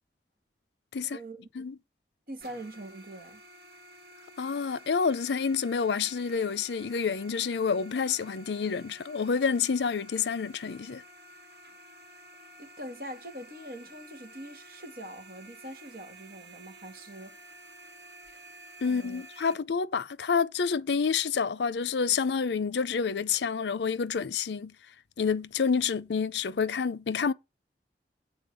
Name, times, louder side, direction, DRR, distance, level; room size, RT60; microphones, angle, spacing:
voice 1, 1.0-1.4 2.3-3.4 12.6-17.4 18.9-19.2, right 1 dB, 55° right, 2.0 m, -43 dB
sound 1, 2.4-19.5, right 1 dB, 80° right, 2.6 m, -52 dB
voice 2, 4.4-11.0 18.8-24.7 25.2-27.3, left 6 dB, 80° left, 0.5 m, -28 dB
7.9 x 4.2 x 6.8 m
head